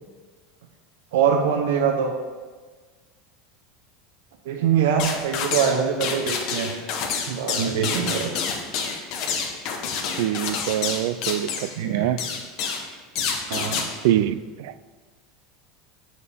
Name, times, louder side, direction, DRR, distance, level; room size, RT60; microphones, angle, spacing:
voice 1, 1.1-2.1 4.4-6.8 7.3-8.3 11.7-12.1 13.5-13.9, right 7 dB, 80° right, 3 dB, 0.9 m, -23 dB
sound 1, 5.0-5.8 6.0-11.7 12.2-12.8 13.2-13.9, left 6 dB, 45° left, 1.0 m, -28 dB
voice 2, 10.2-12.2 14.0-14.7, right 12 dB, 65° right, 15 dB, 0.3 m, -24 dB
8.6 x 6.6 x 3.5 m, 1.4 s
supercardioid pair, 165°, 0 cm